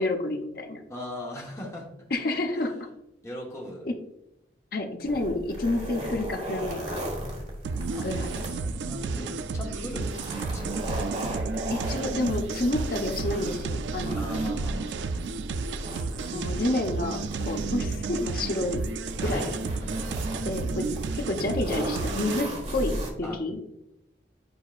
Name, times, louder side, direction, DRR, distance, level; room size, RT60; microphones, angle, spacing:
voice 1, 0.0-0.8 2.1-2.9 3.8-3.9 4.7-7.1 8.0-8.4 11.7-14.2 16.3-18.8 19.2-19.5 20.4-20.9 21.1-23.6, left 2 dB, 55° left, 3 dB, 0.9 m, -29 dB
voice 2, 0.9-1.9 2.5-2.8 3.2-3.9 7.9-8.1 8.5-10.9 14.1-15.2 19.2-20.3 23.2-23.4, left 1 dB, 15° left, -3 dB, 1.2 m, -39 dB
sound 1, 5.1-23.1, right 1 dB, 40° right, 1.3 m, -36 dB
sound 2, 7.6-22.4, right 4 dB, 90° right, 0.4 m, -32 dB
8.8 x 4.9 x 2.4 m, 0.83 s
head